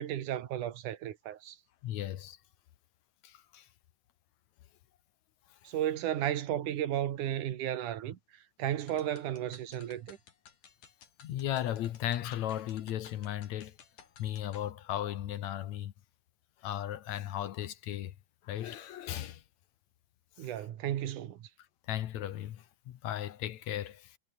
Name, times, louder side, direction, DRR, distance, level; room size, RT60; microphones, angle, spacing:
voice 1, 0.0-1.6 5.6-8.2 8.6-10.2 20.4-21.5, right 11 dB, 85° right, 3.0 m, -34 dB
voice 2, 1.8-2.4 3.2-3.7 11.2-13.8 14.2-15.9 16.6-18.1 18.4-19.4 20.4-20.5 21.9-24.2, left 12 dB, 70° left, 2.4 m, -36 dB
sound 1, 8.8-14.7, left 7 dB, 90° left, 4.4 m, -57 dB
omnidirectional pair, 3.5 m